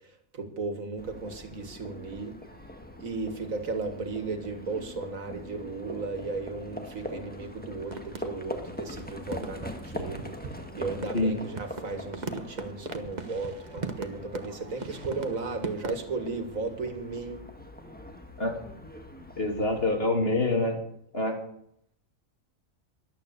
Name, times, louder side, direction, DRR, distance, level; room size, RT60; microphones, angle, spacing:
voice 1, 0.3-2.3 3.0-10.3 10.7-17.4, right 3 dB, 75° right, 7 dB, 2.3 m, -35 dB
Livestock farm animals working animals, 1.0-20.0, left 1 dB, 5° left, 1.5 m, -43 dB
sound 1, 7.8-8.7 9.0-9.1 9.3-16.1, right 3 dB, 35° right, 1.2 m, -39 dB
voice 2, 19.4-20.8 21.1-21.4, left 2 dB, 45° left, 2 dB, 3.0 m, -26 dB
13.5 x 11.5 x 6.8 m, 0.72 s
omnidirectional pair, 1.4 m